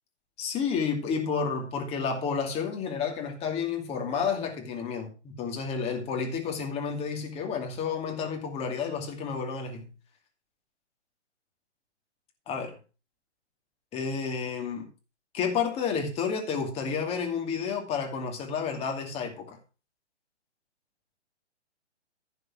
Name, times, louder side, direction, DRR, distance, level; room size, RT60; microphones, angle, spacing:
voice 1, 0.4-9.9 12.5-12.8 13.9-14.9 15.3-19.6, left 6 dB, 15° left, 2.6 m, -31 dB
15.0 x 5.2 x 6.0 m
hypercardioid pair, 140°, 35 cm